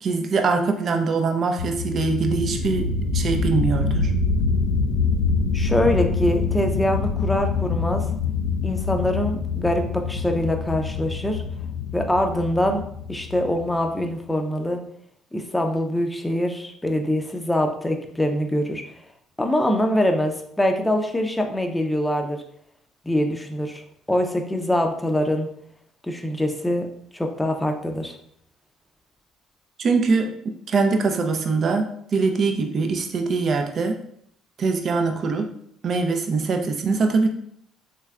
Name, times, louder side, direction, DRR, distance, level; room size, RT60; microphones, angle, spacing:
voice 1, 0.0-4.1 29.8-31.8 32.1-34.0 34.6-35.5 35.8-37.3, right 4 dB, 50° right, 5 dB, 0.5 m, -23 dB
sound 1, 1.6-14.0, left 4 dB, 80° left, 0.3 m, -25 dB
voice 2, 5.5-8.0 8.6-11.4 11.9-12.8 13.1-14.8 15.3-18.8 19.4-22.4 23.0-23.8 24.1-25.5 26.0-26.9 27.1-28.1, left 1 dB, 10° left, 4 dB, 0.5 m, -24 dB
3.3 x 3.1 x 2.4 m, 0.69 s
supercardioid pair, 65°, 0 cm